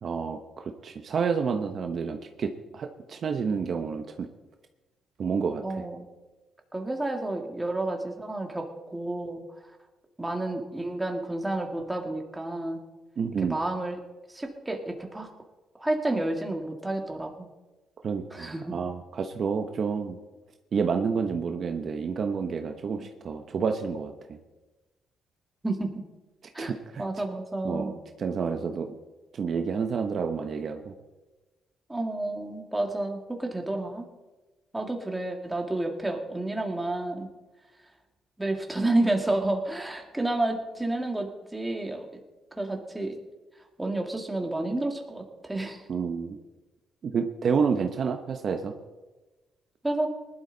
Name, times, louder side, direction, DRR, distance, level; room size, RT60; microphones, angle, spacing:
voice 1, 0.0-4.0 5.2-5.6 13.2-13.6 18.0-20.2 20.7-24.4 26.6-27.0 27.6-28.9 29.3-30.9 45.9-46.4 47.0-48.7, right 5 dB, 55° right, 5 dB, 1.0 m, -29 dB
voice 2, 5.6-6.0 6.7-9.4 10.2-12.8 13.4-14.0 14.3-15.3 15.8-17.5 18.3-18.8 25.6-26.0 26.5-26.7 27.0-27.9 31.9-34.1 34.7-37.3 38.4-42.2 42.6-43.2 43.8-45.8 49.8-50.1, right 2 dB, 10° right, 3 dB, 2.1 m, -30 dB
19.0 x 12.0 x 4.0 m, 1.2 s
cardioid pair, 90°, 0 cm